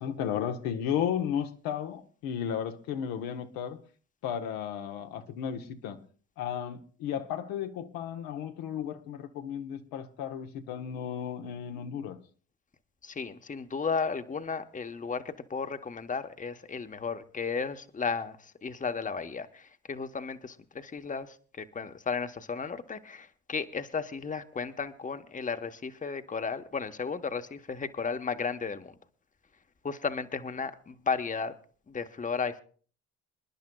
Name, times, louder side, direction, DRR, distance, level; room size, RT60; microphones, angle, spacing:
voice 1, 0.0-3.8 4.2-6.0 6.4-12.2, left 9 dB, 75° left, 1.0 m, -34 dB
voice 2, 13.0-28.9 29.8-31.5 31.9-32.6, left 5 dB, 20° left, 1.0 m, -34 dB
27.5 x 10.5 x 2.3 m
supercardioid pair, 65°, 35 cm